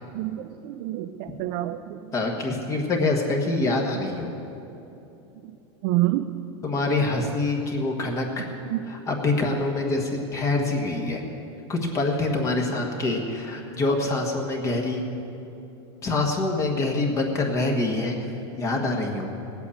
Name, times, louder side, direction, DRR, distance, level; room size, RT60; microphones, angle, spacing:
voice 1, 0.1-2.0 5.8-6.3 8.7-8.8, right 15 dB, 50° right, 8 dB, 0.6 m, -27 dB
voice 2, 2.1-4.3 6.6-8.5 8.9-11.2 11.7-15.0 16.0-18.2 18.6-19.3, left 2 dB, 20° left, 2 dB, 1.4 m, -25 dB
17.5 x 8.3 x 8.5 m, 2.9 s
supercardioid pair, 160°, 15 cm